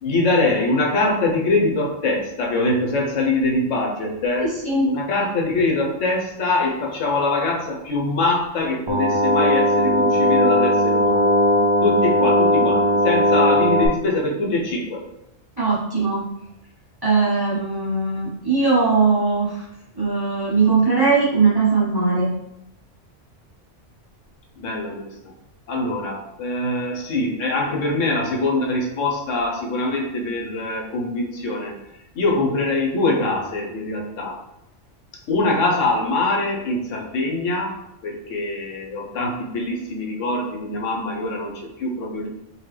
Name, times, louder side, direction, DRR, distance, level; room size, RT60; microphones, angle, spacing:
voice 1, 0.0-4.5 4.8-11.3 11.8-15.1 24.6-25.3 25.7-31.7 32.1-34.4 35.3-37.7 38.0-42.3, left 2 dB, 80° left, 0 dB, 1.1 m, -23 dB
sound 1, 8.9-13.9, left 1 dB, 40° right, 0.4 m, -18 dB
voice 2, 15.6-16.2 17.0-19.6 20.0-22.3, right 4 dB, 20° right, -7 dB, 0.8 m, -19 dB
3.8 x 2.8 x 3.2 m, 0.84 s
omnidirectional pair, 1.3 m